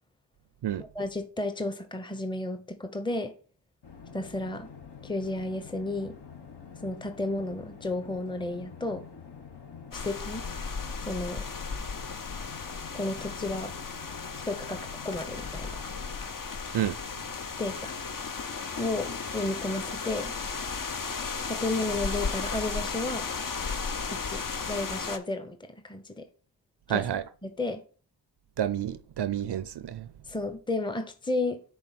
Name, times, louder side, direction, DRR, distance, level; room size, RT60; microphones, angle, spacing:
voice 1, 0.9-3.4 4.1-4.7 5.0-6.2 6.8-9.1 9.9-10.4 11.1-11.5 12.9-13.7 14.5-15.8 17.6-17.9 18.8-20.3 21.5-23.3 24.1-26.3 26.9-27.0 27.4-27.8 30.3-31.6, left 2 dB, 10° left, 0.8 m, -32 dB
sound 1, 3.8-16.2, left 6 dB, 60° left, 1.2 m, -47 dB
sound 2, 9.9-25.2, left 5 dB, 45° left, 0.8 m, -35 dB
voice 2, 26.9-27.2 28.6-30.1, right 10 dB, 65° right, 0.5 m, -29 dB
6.1 x 3.8 x 5.8 m
cardioid pair, 40°, 45 cm